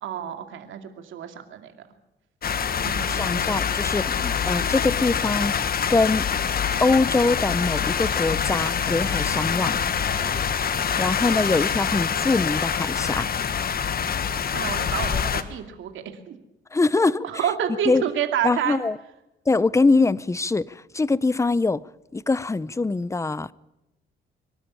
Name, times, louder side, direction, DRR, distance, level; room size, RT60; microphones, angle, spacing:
voice 1, 0.0-1.7 2.8-3.7 4.2-4.4 14.5-16.4 17.2-18.8, right 9 dB, 80° right, 2.5 m, -29 dB
sound 1, 2.4-15.4, left 7 dB, 50° left, 1.4 m, -25 dB
voice 2, 3.0-5.5 5.9-6.3 6.8-9.8 11.0-13.3 16.7-17.2 17.9-18.0 18.4-19.0 19.5-21.9 22.1-23.5, left 3 dB, 15° left, 0.7 m, -23 dB
24.0 x 12.5 x 10.0 m
cardioid pair, 90°, 20 cm